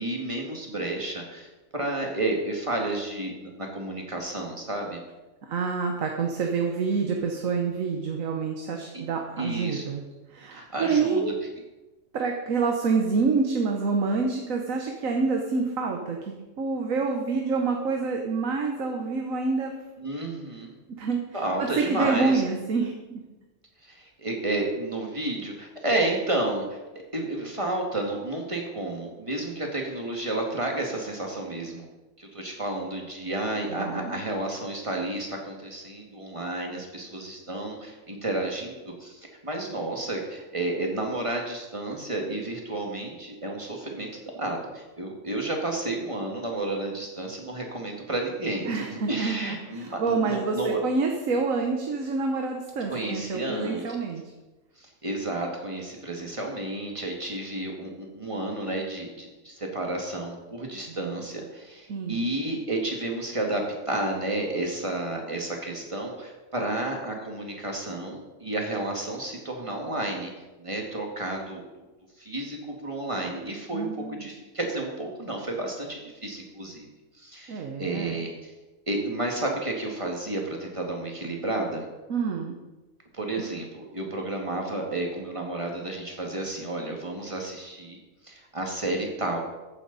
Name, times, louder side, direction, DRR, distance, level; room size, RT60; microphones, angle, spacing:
voice 1, 0.0-1.5 1.7-5.0 8.9-9.1 9.4-9.9 10.5-11.3 20.0-20.8 21.3-22.4 23.8-26.8 27.1-31.9 32.2-44.1 44.4-50.8 52.9-54.0 54.8-70.3 70.6-71.6 72.2-76.9 77.2-78.5 78.9-81.9 83.2-88.0 88.2-89.4, right 2 dB, 25° right, 0 dB, 2.1 m, -31 dB
voice 2, 5.5-10.0 10.3-11.3 12.1-19.7 21.0-23.2 33.7-34.2 48.7-54.2 60.9-61.1 61.9-62.3 73.7-74.3 77.5-78.2 82.1-82.6 83.4-83.5, right 4 dB, 85° right, 2 dB, 1.5 m, -27 dB
14.0 x 9.8 x 4.1 m, 1.1 s
omnidirectional pair, 1.4 m